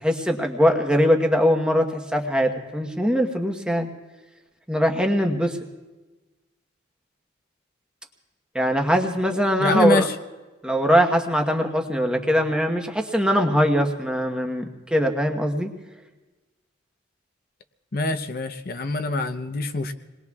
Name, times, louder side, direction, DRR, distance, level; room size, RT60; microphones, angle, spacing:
voice 1, 0.0-3.9 4.7-5.6 8.5-10.1 10.6-15.7, equal, 5° right, 3 dB, 1.1 m, -21 dB
voice 2, 9.6-10.1 17.9-19.9, left 2 dB, 50° left, 8 dB, 0.7 m, -24 dB
28.5 x 20.5 x 2.4 m, 1.2 s
head